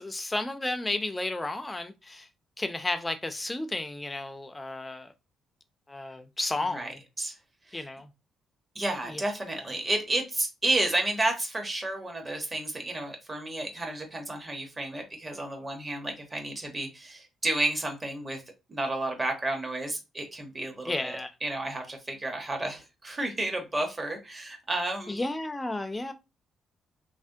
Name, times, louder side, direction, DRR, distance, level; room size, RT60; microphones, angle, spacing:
voice 1, 0.0-2.3 2.6-5.1 5.9-7.0 7.7-8.1 9.1-9.2 20.9-21.3 25.1-26.1, left 2 dB, 15° left, 0.5 m, -33 dB
voice 2, 8.7-18.4 18.7-25.2, right 2 dB, 25° right, 1.0 m, -31 dB
3.3 x 2.1 x 2.7 m
cardioid pair, 90°, 0 cm